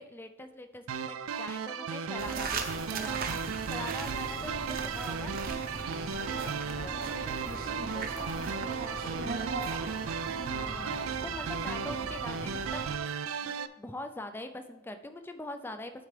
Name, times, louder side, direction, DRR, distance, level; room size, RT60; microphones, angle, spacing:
voice 1, 0.0-5.3 10.5-12.9 13.4-16.1, left 1 dB, 10° left, 8 dB, 0.4 m, -43 dB
sound 1, 0.9-13.7, right 6 dB, 85° right, 0.4 m, -35 dB
sound 2, 2.2-13.0, right 3 dB, 45° right, 0.7 m, -39 dB
voice 2, 4.0-4.5 6.1-10.0, left 2 dB, 45° left, 0 dB, 1.7 m, -47 dB
sound 3, 7.3-12.9, left 1 dB, 70° left, 2.9 m, -52 dB
12.0 x 4.5 x 3.3 m, 1.1 s
head